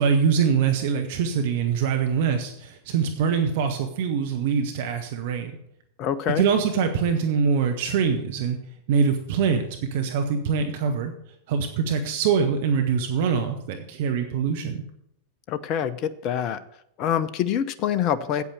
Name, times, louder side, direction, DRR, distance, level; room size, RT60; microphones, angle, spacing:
voice 1, 0.0-5.5 6.4-8.6 8.9-11.1 11.5-14.8, right 6 dB, 50° right, 6 dB, 0.9 m, -24 dB
voice 2, 6.0-6.4 15.5-16.6 17.0-18.4, left 9 dB, 40° left, 15 dB, 0.6 m, -25 dB
8.3 x 8.3 x 7.0 m, 0.74 s
figure-of-eight pair, 90°, 0 cm